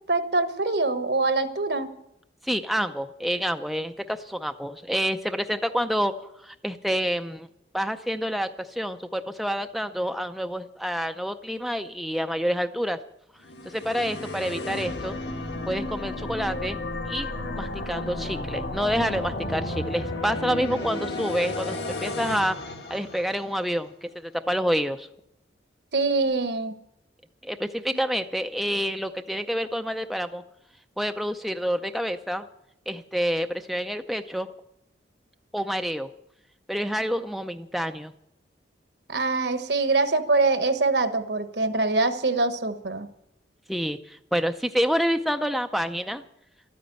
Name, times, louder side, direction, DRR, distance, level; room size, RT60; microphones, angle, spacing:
voice 1, 0.1-1.9 20.8-20.9 25.9-26.8 39.1-43.1, right 3 dB, 65° right, 10 dB, 1.2 m, -24 dB
voice 2, 2.4-7.5 7.7-13.0 13.7-15.2 15.7-16.8 17.1-17.3 17.6-22.6 22.9-25.1 27.4-30.4 31.0-32.5 32.9-34.5 35.5-36.1 36.7-38.1 43.7-46.2, equal, ahead, 7 dB, 0.4 m, -28 dB
sound 1, 13.4-23.7, left 2 dB, 65° left, 2.0 m, -33 dB
13.0 x 9.3 x 9.0 m, 0.78 s
head